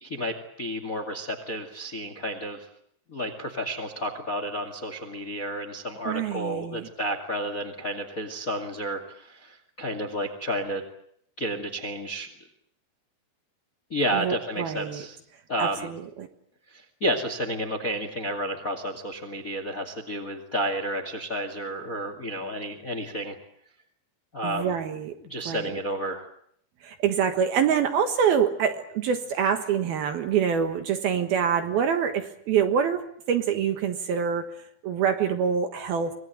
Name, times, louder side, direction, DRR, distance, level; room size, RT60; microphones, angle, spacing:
voice 1, 0.0-2.7 3.1-10.8 11.4-12.3 13.9-15.2 15.5-15.9 16.7-23.4 24.3-24.8 25.2-26.3, equal, 35° left, 7 dB, 1.4 m, -31 dB
voice 2, 6.1-6.9 14.1-15.0 15.6-16.3 24.4-25.2 25.5-25.8 26.8-36.1, right 7 dB, 65° right, 7 dB, 2.8 m, -26 dB
25.5 x 20.5 x 9.1 m, 0.69 s
omnidirectional pair, 5.5 m